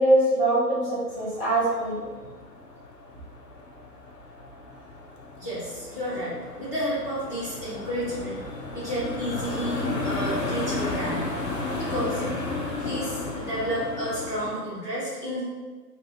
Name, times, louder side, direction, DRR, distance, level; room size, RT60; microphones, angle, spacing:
voice 1, 0.0-2.0, right 1 dB, 15° left, -11 dB, 1.0 m, -22 dB
sound 1, 1.1-14.5, left 2 dB, 75° left, 0.8 m, -33 dB
voice 2, 5.4-11.5 11.8-12.2 12.8-15.4, equal, 10° right, -12 dB, 0.5 m, -31 dB
3.0 x 2.7 x 3.5 m, 1.4 s
figure-of-eight pair, 125°, 49 cm